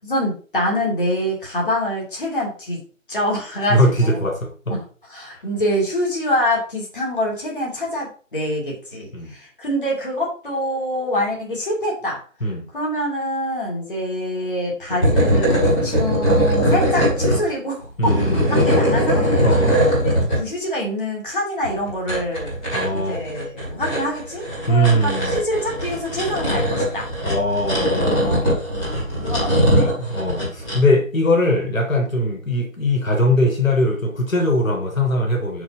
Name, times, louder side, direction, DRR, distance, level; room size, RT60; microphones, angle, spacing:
voice 1, 0.0-2.8 3.1-4.2 4.7-12.2 12.7-18.1 18.5-19.2 20.0-22.5 22.8-27.1 28.1-28.4 29.2-29.9, left 1 dB, 40° left, -3 dB, 2.9 m, -25 dB
voice 2, 3.7-4.8 9.1-9.3 12.4-12.7 18.0-18.5 19.4-19.7 22.7-23.2 24.7-25.4 27.2-28.6 30.0-35.6, left 1 dB, 80° left, 1 dB, 2.2 m, -20 dB
sound 1, 14.9-17.4 17.8-20.4 21.6-30.8, equal, 5° left, 2.4 m, -20 dB
8.9 x 6.2 x 2.8 m, 0.39 s
figure-of-eight pair, 175°, 40 cm